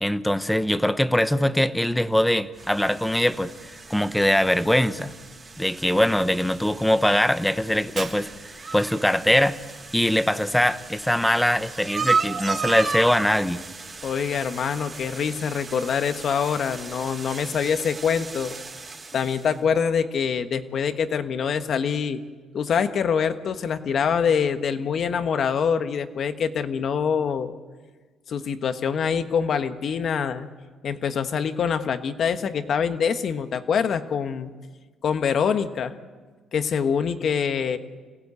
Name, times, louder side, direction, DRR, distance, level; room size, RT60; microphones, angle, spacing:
voice 1, 0.0-5.1 5.6-8.3 8.7-9.6 9.9-13.6, left 1 dB, 5° left, 12 dB, 0.9 m, -22 dB
sound 1, 2.5-19.5, right 4 dB, 25° right, 3.4 m, -35 dB
Shatter, 8.0-8.8, right 5 dB, 45° right, 2.9 m, -37 dB
voice 2, 14.0-18.6 19.1-22.2 22.5-27.6 28.3-30.5 30.8-34.5 35.0-36.0 36.5-37.8, left 7 dB, 50° left, 9 dB, 1.3 m, -25 dB
26.0 x 17.0 x 8.3 m, 1.4 s
cardioid pair, 110°, 0 cm